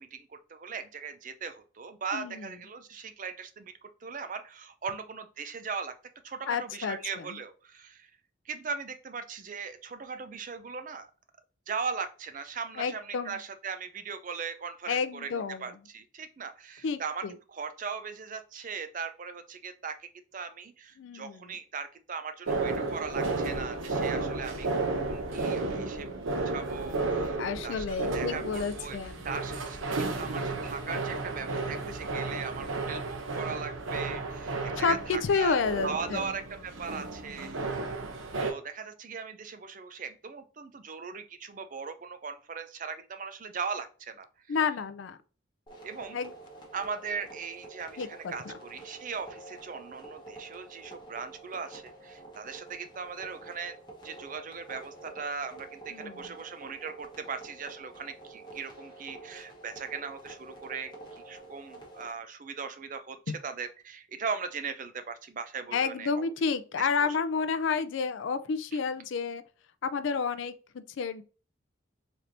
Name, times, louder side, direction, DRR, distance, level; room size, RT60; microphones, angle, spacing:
voice 1, 0.0-5.9 6.2-8.1 8.5-11.1 11.7-29.0 29.2-35.6 35.8-37.8 38.4-44.6 45.8-46.2 46.7-53.8 54.0-63.2 63.4-66.3 66.8-67.2, right 5 dB, 40° right, 0.5 m, -39 dB
voice 2, 2.1-2.5 6.5-7.4 12.8-13.4 14.9-15.7 16.8-17.3 21.0-21.5 27.4-29.3 31.8-32.0 34.8-36.2 44.5-45.2 46.1-46.3 48.0-48.5 55.9-56.3 63.3-63.4 65.7-69.4 69.8-71.2, left 5 dB, 65° left, 0.4 m, -30 dB
sound 1, 22.5-38.5, right 3 dB, 80° right, 0.8 m, -33 dB
sound 2, 45.7-62.1, right 2 dB, 20° left, 1.1 m, -48 dB
4.1 x 3.3 x 2.6 m
head